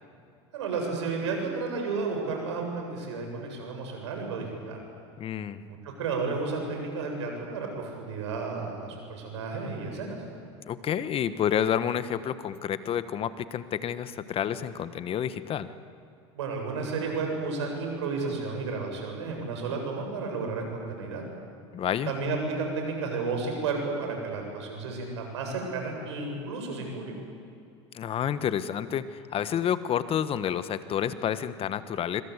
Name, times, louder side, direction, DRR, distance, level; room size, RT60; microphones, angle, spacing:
voice 1, 0.5-4.8 5.6-10.2 16.3-21.2 22.1-27.1, right 4 dB, 85° right, 2 dB, 7.8 m, -32 dB
voice 2, 5.2-5.6 10.7-15.7 21.7-22.1 27.9-32.2, left 9 dB, 40° left, 13 dB, 1.3 m, -29 dB
26.0 x 25.0 x 8.2 m, 2.5 s
hypercardioid pair, 90°, 15 cm